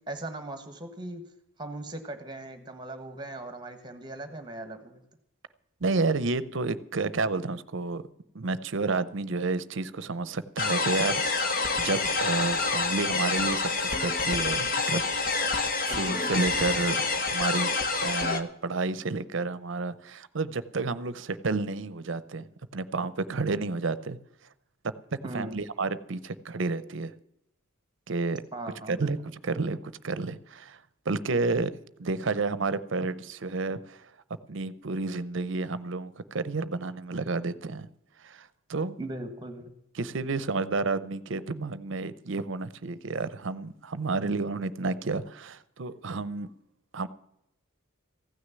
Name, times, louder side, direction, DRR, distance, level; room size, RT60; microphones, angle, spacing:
voice 1, 0.1-1.2 1.6-5.0 15.9-16.2 25.2-25.6 28.5-29.1 39.0-39.7, right 2 dB, 20° right, 8 dB, 1.4 m, -39 dB
voice 2, 5.8-8.0 8.3-15.0 15.5-17.7 18.0-22.5 22.7-24.2 24.8-24.9 25.3-27.1 28.1-28.4 28.9-30.8 31.1-31.7 32.0-34.0 34.5-37.9 38.2-39.0 40.0-46.5 46.9-47.1, right 3 dB, 60° right, 16 dB, 0.7 m, -30 dB
sound 1, 10.6-18.4, left 3 dB, 40° left, 1.0 m, -27 dB
15.5 x 6.5 x 9.6 m, 0.79 s
head